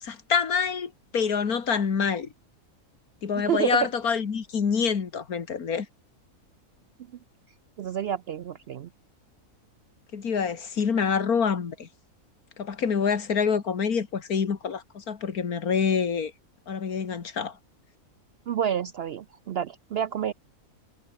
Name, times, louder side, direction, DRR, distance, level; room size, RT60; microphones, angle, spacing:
voice 1, 0.0-2.3 3.2-5.9 10.1-11.9 12.6-16.3 16.7-17.6, left 6 dB, 75° left, 2.3 m, -26 dB
voice 2, 3.5-3.9 7.8-8.9 18.5-20.3, right 9 dB, 70° right, 0.6 m, -29 dB
omnidirectional pair, 1.6 m